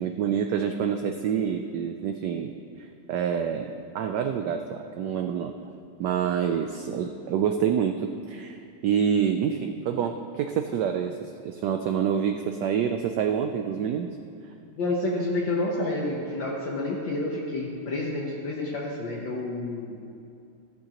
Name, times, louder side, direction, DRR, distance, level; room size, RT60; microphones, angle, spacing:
voice 1, 0.0-5.6 6.0-14.1, right 8 dB, 80° right, 5 dB, 0.9 m, -27 dB
voice 2, 14.7-20.0, left 2 dB, 65° left, -2 dB, 1.7 m, -29 dB
13.5 x 12.5 x 2.9 m, 2.5 s
omnidirectional pair, 2.4 m